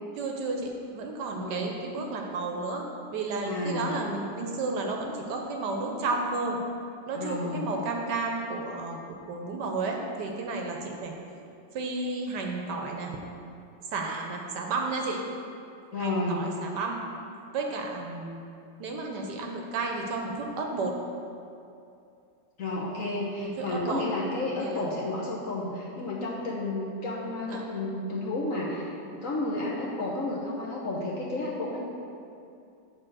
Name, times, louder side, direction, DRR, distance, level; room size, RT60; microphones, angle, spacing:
voice 1, 0.2-2.8 3.1-6.6 7.1-11.1 11.7-13.1 13.9-15.2 16.0-17.0 17.5-18.4 18.8-20.9 23.4-24.0 24.6-24.8 27.5-27.6, right 3 dB, 70° right, 1 dB, 1.3 m, -32 dB
voice 2, 1.4-1.7 3.4-3.9 7.1-7.7 15.9-16.4 22.6-31.8, left 2 dB, 55° left, -4 dB, 1.1 m, -31 dB
7.8 x 3.9 x 6.2 m, 2.6 s
omnidirectional pair, 2.1 m